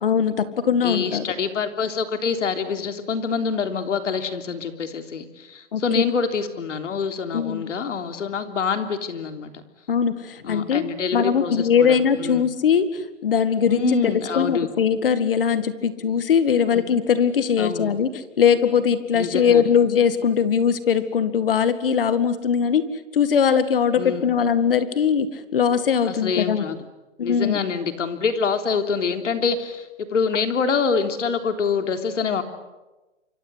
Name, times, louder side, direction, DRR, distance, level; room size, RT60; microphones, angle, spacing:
voice 1, 0.0-1.2 5.7-6.0 7.3-7.7 9.9-10.9 11.1-12.9 13.2-18.1 18.4-22.8 23.1-25.3 25.5-26.6 27.2-27.6, left 7 dB, 50° left, 13 dB, 2.0 m, -20 dB
voice 2, 0.8-9.6 10.4-12.5 13.7-14.7 16.7-16.8 17.6-17.9 19.1-19.7 24.0-24.3 26.1-26.8 27.2-32.4, left 5 dB, 85° left, 7 dB, 3.6 m, -26 dB
27.5 x 25.5 x 8.1 m, 1.1 s
hypercardioid pair, 175°, 36 cm